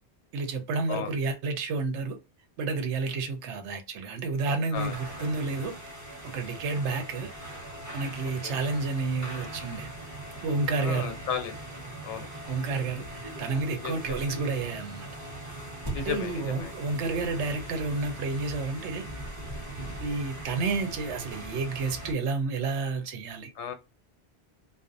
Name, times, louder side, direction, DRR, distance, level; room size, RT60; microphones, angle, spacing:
voice 1, 0.3-2.2 2.6-5.8 6.2-7.3 7.9-9.9 10.4-11.2 12.5-15.1 16.0-19.0 20.0-23.5, right 3 dB, 85° right, 1.0 m, -30 dB
voice 2, 4.7-5.3 6.9-7.0 8.4-8.6 10.8-11.6 12.0-12.3 13.8-13.9 15.9-16.7 23.6-23.7, left 8 dB, 90° left, 0.9 m, -35 dB
sound 1, 4.7-22.1, right 1 dB, 15° right, 0.9 m, -40 dB
2.5 x 2.0 x 2.5 m
omnidirectional pair, 1.1 m